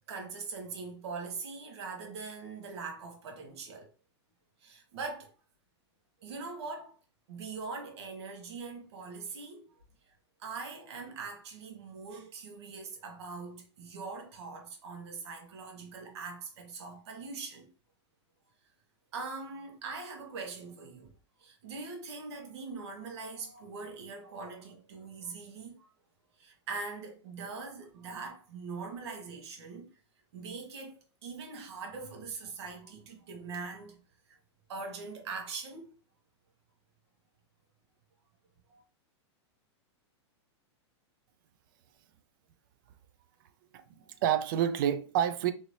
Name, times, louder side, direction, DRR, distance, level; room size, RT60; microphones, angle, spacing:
voice 1, 0.1-3.9 4.6-5.3 6.2-6.9 7.3-9.8 10.4-17.7 19.1-21.1 21.4-25.9 26.4-29.9 30.3-33.9 34.7-35.9 38.7-38.8, right 4 dB, 65° right, 1.0 m, -42 dB
voice 2, 43.7-45.5, right 10 dB, 45° right, 0.4 m, -29 dB
2.7 x 2.7 x 3.1 m
supercardioid pair, 160°, 15 cm